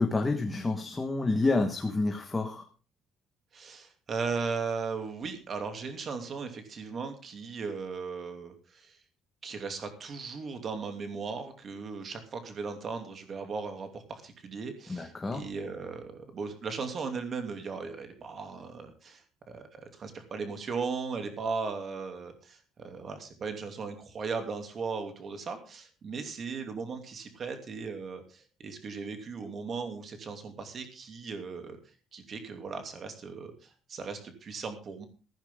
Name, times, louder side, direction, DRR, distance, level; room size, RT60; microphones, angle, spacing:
voice 1, 0.0-2.6 14.9-15.4, left 3 dB, 10° left, 4 dB, 1.4 m, -28 dB
voice 2, 3.5-9.0 9.4-31.8 32.1-35.1, right 5 dB, 30° right, 6 dB, 2.7 m, -37 dB
15.5 x 14.5 x 3.7 m, 0.34 s
cardioid pair, 180°, 0 cm